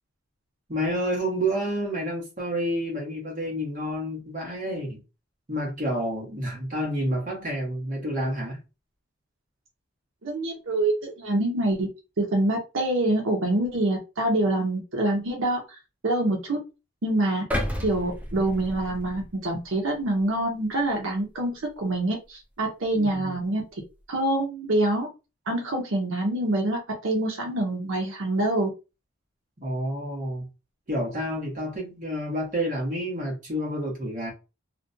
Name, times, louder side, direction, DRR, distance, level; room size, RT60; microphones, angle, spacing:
voice 1, 0.7-5.0 5.5-8.6 22.9-23.4 29.6-30.5 30.9-34.3, equal, 40° right, 1.1 m, -29 dB
voice 2, 10.2-11.9 12.2-15.8 16.0-16.6 17.0-17.4 17.8-23.6 24.1-25.1 25.5-28.7, right 1 dB, 80° right, 0.7 m, -25 dB
sound 1, 17.5-19.7 20.1-20.3, equal, 5° right, 0.4 m, -32 dB
2.5 x 2.2 x 2.5 m
head